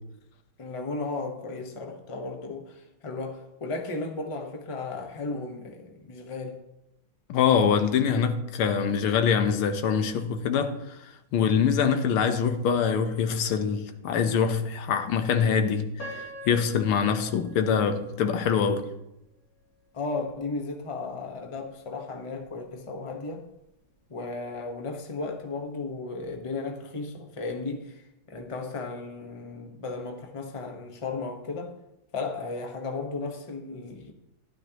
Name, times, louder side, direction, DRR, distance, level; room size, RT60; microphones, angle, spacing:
voice 1, 0.6-6.6 19.9-23.4 24.1-31.7 32.1-34.1, left 3 dB, 25° left, 0.7 m, -35 dB
voice 2, 7.3-11.0 11.3-18.9, left 7 dB, 85° left, 1.8 m, -24 dB
Piano, 16.0-19.0 19.6-19.7 20.3-20.6, equal, 40° left, 3.2 m, -44 dB
12.5 x 11.0 x 2.9 m
omnidirectional pair, 2.3 m